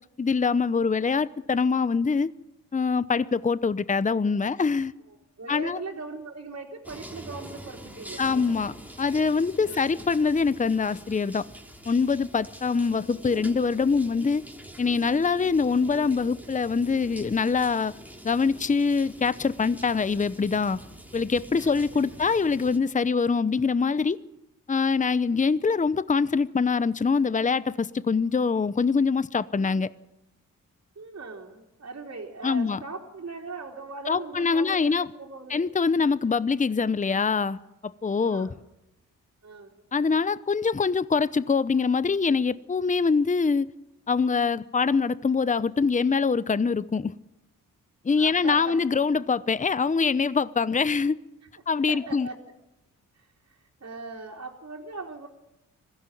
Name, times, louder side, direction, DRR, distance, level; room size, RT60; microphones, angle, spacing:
voice 1, 0.2-2.3 2.7-4.9 5.5-5.8 8.2-8.7 9.0-11.4 11.9-14.4 14.8-17.9 18.2-20.8 21.1-24.2 24.7-29.9 32.4-32.8 34.1-35.1 35.5-38.5 39.9-43.7 44.1-47.1 48.0-51.2 51.7-52.3, left 5 dB, 20° left, 0.8 m, -24 dB
voice 2, 5.1-8.2 9.6-9.8 21.6-22.2 31.0-35.6 38.2-38.5 39.4-39.7 48.2-48.8 51.9-52.4 53.2-55.3, right 3 dB, 50° right, 3.7 m, -40 dB
sound 1, 6.8-22.8, right 1 dB, 5° right, 3.6 m, -45 dB
20.5 x 15.5 x 9.1 m
cardioid pair, 60°, 34 cm